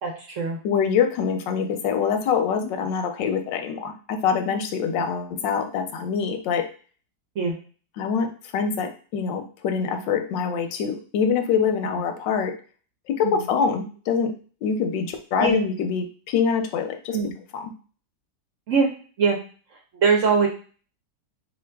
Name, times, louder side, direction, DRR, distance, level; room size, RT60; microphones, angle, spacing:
voice 1, 0.0-0.6 7.3-7.6 11.8-12.0 13.2-13.4 15.4-15.6 17.1-17.3 18.7-18.9 19.2-19.4 19.7-20.5, right 5 dB, 55° right, 0 dB, 0.9 m, -22 dB
voice 2, 0.6-6.7 8.0-12.6 13.1-14.3 14.6-17.2 17.5-17.7, left 6 dB, 90° left, 6 dB, 1.4 m, -25 dB
4.2 x 3.1 x 3.3 m, 0.40 s
omnidirectional pair, 1.9 m